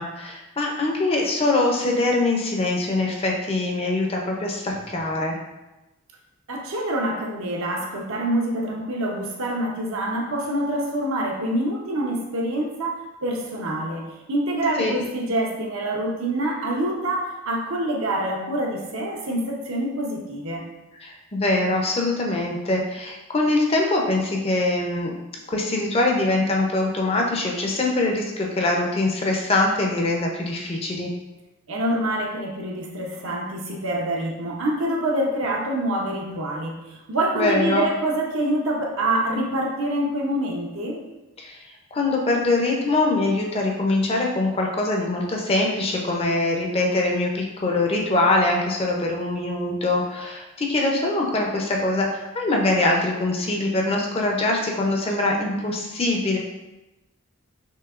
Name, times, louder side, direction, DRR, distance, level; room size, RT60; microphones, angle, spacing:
voice 1, 0.0-5.4 14.8-14.9 21.0-25.2 25.5-31.1 37.3-37.9 41.4-41.6 41.9-56.4, left 2 dB, 25° left, 0 dB, 0.5 m, -23 dB
voice 2, 6.5-20.6 31.7-41.0, right 1 dB, 70° right, 0 dB, 0.7 m, -26 dB
5.8 x 2.7 x 2.4 m, 1.0 s
head